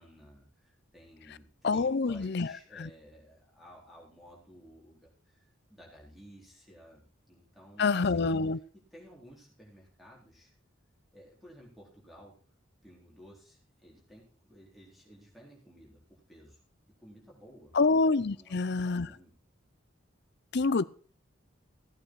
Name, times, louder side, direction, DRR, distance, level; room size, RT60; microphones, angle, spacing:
voice 1, 0.0-8.4 8.9-10.5 11.1-12.3 12.8-16.6 16.8-17.8 18.2-19.3, equal, ahead, 4.1 m, -55 dB
voice 2, 1.6-2.9 7.8-8.6 17.7-19.1 20.5-20.8, left 3 dB, 55° left, 0.5 m, -27 dB
15.5 x 8.9 x 4.7 m
head